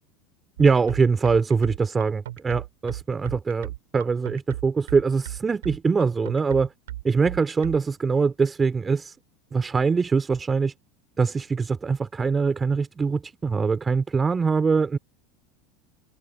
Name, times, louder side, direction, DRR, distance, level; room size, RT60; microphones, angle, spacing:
voice 1, 0.6-6.7 7.0-9.2 9.5-10.7 11.2-15.0, right 5 dB, 20° right, 3.2 m, -23 dB
sound 1, 0.6-7.8, right 14 dB, 80° right, 3.5 m, -35 dB
hypercardioid pair, 95°, 0 cm